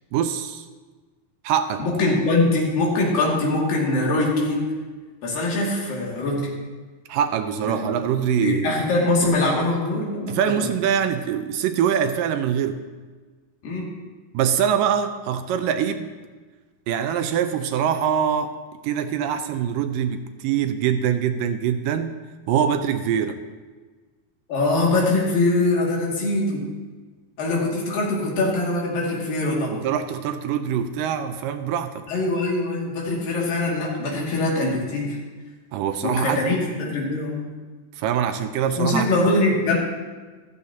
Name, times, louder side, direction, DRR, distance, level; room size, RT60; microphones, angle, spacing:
voice 1, 0.1-0.7 1.4-1.8 7.1-8.8 10.3-12.8 14.3-16.1 16.9-18.5 18.8-22.2 22.5-23.4 29.7-32.0 35.7-36.4 38.0-39.1, right 8 dB, 80° right, 8 dB, 2.2 m, -23 dB
voice 2, 1.8-4.6 5.2-6.5 7.6-8.0 8.4-10.7 13.6-13.9 24.5-26.7 27.4-29.8 32.1-35.2 36.0-37.5 38.8-39.8, left 2 dB, 75° left, -3 dB, 4.1 m, -23 dB
14.5 x 14.0 x 2.9 m, 1.4 s
omnidirectional pair, 4.0 m